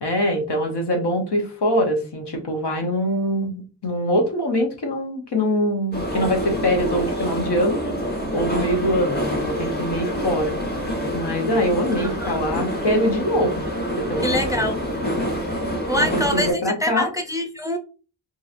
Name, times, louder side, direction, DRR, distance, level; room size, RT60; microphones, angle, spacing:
voice 1, 0.0-7.8 8.3-10.6 11.1-13.7 14.1-14.4 16.0-17.1, equal, 75° left, 2 dB, 0.9 m, -23 dB
sound 1, 5.9-16.5, equal, 25° left, 1.0 m, -26 dB
voice 2, 12.0-12.4 14.2-14.8 15.9-17.8, left 1 dB, 10° right, 4 dB, 0.4 m, -25 dB
2.9 x 2.6 x 2.4 m, 0.35 s
wide cardioid pair, 60°, 41 cm